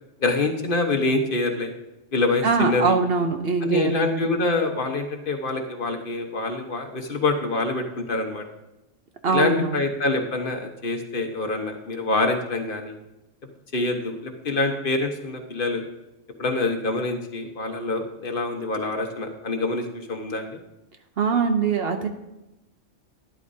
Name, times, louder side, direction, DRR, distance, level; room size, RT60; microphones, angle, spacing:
voice 1, 0.2-1.7 2.1-3.0 3.6-8.4 9.3-12.9 13.7-15.8 16.4-20.6, left 2 dB, 45° left, 4 dB, 1.2 m, -25 dB
voice 2, 2.4-4.3 9.2-9.8 21.2-22.1, right 5 dB, 55° right, 6 dB, 0.9 m, -22 dB
12.0 x 11.0 x 2.7 m, 0.96 s
omnidirectional pair, 1.3 m